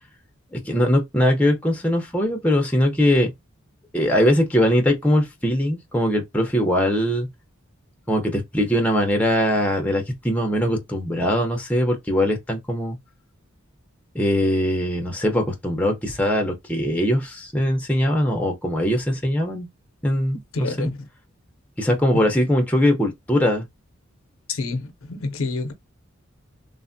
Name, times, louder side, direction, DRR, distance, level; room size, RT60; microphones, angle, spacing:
voice 1, 0.5-3.3 3.9-7.3 8.1-13.0 14.1-19.7 20.0-20.9 21.8-23.7, equal, 5° left, 0.6 m, -21 dB
voice 2, 20.5-21.0 22.1-22.2 24.5-25.7, left 3 dB, 80° left, 0.6 m, -28 dB
3.3 x 2.0 x 2.5 m
head